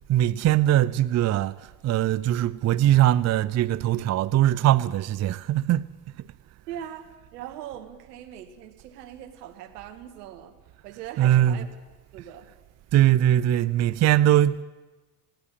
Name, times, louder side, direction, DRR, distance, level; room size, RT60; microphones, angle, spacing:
voice 1, 0.1-1.6 1.8-5.9 11.2-11.6 12.9-14.6, right 12 dB, 35° right, 0.6 m, -21 dB
voice 2, 6.7-10.6 10.8-11.7 12.1-12.5, right 10 dB, 75° right, 2.2 m, -40 dB
19.0 x 17.0 x 8.9 m
hypercardioid pair, 65°, 47 cm